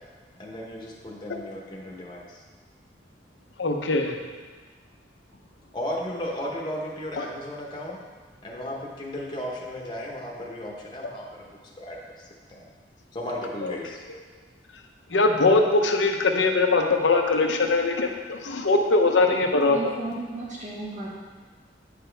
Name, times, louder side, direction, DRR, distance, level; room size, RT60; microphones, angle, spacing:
voice 1, 0.4-2.4 5.7-8.0 8.4-12.6 13.1-14.1, left 1 dB, 25° left, -3 dB, 1.0 m, -35 dB
voice 2, 3.6-4.2 7.2-7.3 13.6-13.7 15.1-19.8, left 3 dB, 85° left, 4 dB, 0.8 m, -21 dB
voice 3, 19.7-21.1, right 2 dB, 45° right, -5 dB, 1.8 m, -34 dB
8.6 x 6.0 x 3.4 m, 1.4 s
head